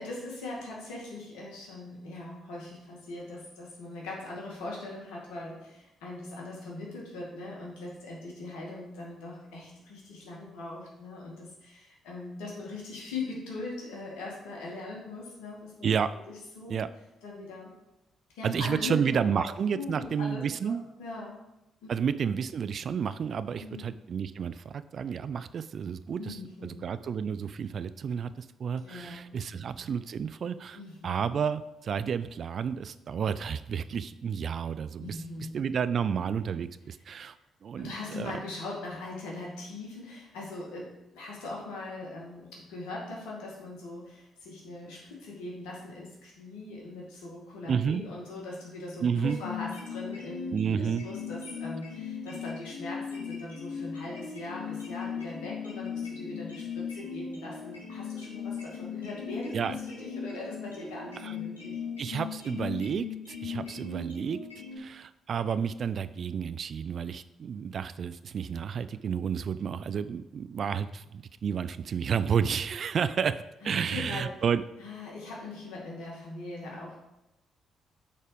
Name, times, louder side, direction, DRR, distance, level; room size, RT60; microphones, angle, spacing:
voice 1, 0.0-15.9 16.3-16.8 17.2-17.7 18.3-19.0 19.2-19.4 19.7-21.3 21.8-22.0 23.6-23.9 26.2-26.8 28.8-29.7 30.7-31.2 35.0-35.6 37.8-40.9 41.1-61.8 63.5-63.7 73.6-74.3 74.8-77.0, left 2 dB, 70° left, -3 dB, 2.2 m, -41 dB
voice 2, 18.4-20.8 21.9-26.4 26.6-30.8 31.0-35.2 35.5-37.4 37.6-38.4 47.7-48.0 49.0-49.4 50.5-51.0 59.5-59.8 61.2-61.3 62.0-64.4 64.8-74.6, right 7 dB, 50° right, 14 dB, 0.4 m, -31 dB
sound 1, 49.1-64.8, left 6 dB, 85° left, 2.5 m, -38 dB
8.4 x 4.3 x 5.1 m, 0.93 s
figure-of-eight pair, 40°, 0 cm